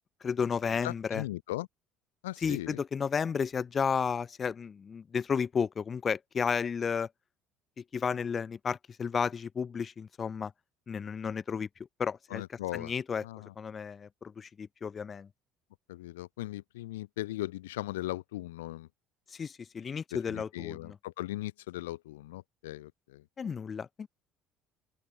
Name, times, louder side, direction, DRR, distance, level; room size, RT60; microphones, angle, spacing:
voice 1, 0.2-1.2 2.4-7.1 7.8-10.5 10.9-11.7 12.0-13.2 13.6-15.3 19.3-21.0 23.4-24.1, left 6 dB, 40° left, 1.0 m, -33 dB
voice 2, 0.8-1.7 2.2-2.8 12.3-12.9 13.2-13.5 15.9-18.9 20.3-23.2, left 17 dB, 80° left, 0.7 m, -38 dB
open air
hypercardioid pair, 60°, 0 cm